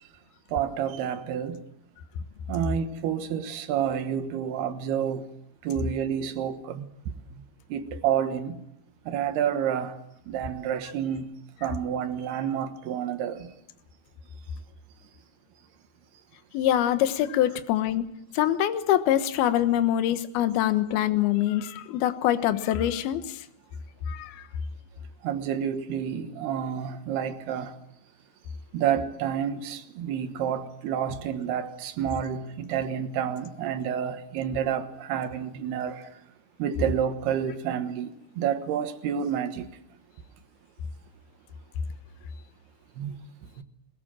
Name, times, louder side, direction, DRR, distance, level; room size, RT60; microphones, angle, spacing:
voice 1, 0.5-1.6 2.5-5.3 5.6-6.9 7.3-7.4 7.7-8.6 9.1-10.0 10.3-11.3 11.6-13.5 25.2-27.8 28.7-36.1 36.6-39.7 43.0-43.1 43.6-43.7, right 9 dB, 70° right, 3.2 m, -29 dB
voice 2, 16.5-18.1 18.3-23.4 24.1-24.5, left 12 dB, 70° left, 2.9 m, -24 dB
21.5 x 21.0 x 7.6 m
omnidirectional pair, 5.0 m